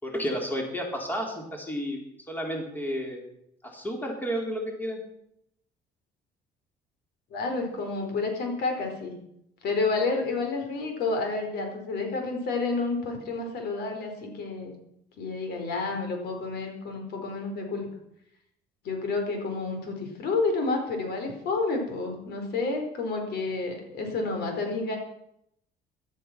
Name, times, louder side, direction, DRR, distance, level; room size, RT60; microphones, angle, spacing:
voice 1, 0.0-2.0 2.3-3.2 3.6-5.0, equal, 10° left, 1 dB, 4.1 m, -31 dB
voice 2, 7.3-9.1 9.6-14.7 15.2-17.9 18.8-25.0, left 3 dB, 70° left, 4 dB, 4.6 m, -30 dB
16.0 x 12.5 x 6.1 m, 0.77 s
cardioid pair, 110°, 17 cm